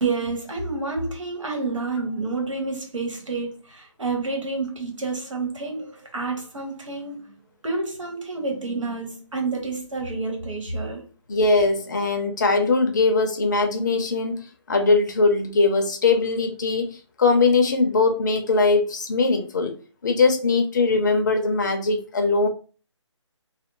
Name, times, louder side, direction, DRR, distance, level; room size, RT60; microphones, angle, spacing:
voice 1, 0.0-7.3 7.6-11.1, right 3 dB, 85° right, 1.2 m, -29 dB
voice 2, 11.3-19.7 20.0-22.5, left 3 dB, 40° left, 0.5 m, -21 dB
2.5 x 2.0 x 3.0 m
hypercardioid pair, 165°, 16 cm